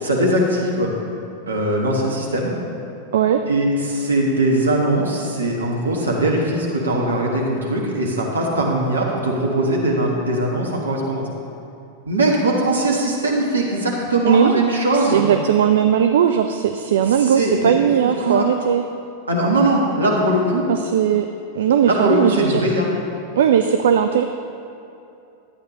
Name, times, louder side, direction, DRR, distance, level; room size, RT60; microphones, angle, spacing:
voice 1, 0.0-0.9 1.5-2.5 3.5-11.3 12.0-15.2 17.2-18.5 19.3-20.7 21.9-22.9, right 1 dB, 75° right, -2 dB, 1.4 m, -20 dB
voice 2, 14.2-14.6 14.9-18.8 20.7-21.3 21.5-22.6 23.4-24.2, right 8 dB, 60° right, 8 dB, 0.3 m, -18 dB
11.5 x 8.7 x 3.1 m, 2.7 s
figure-of-eight pair, 90°, 0 cm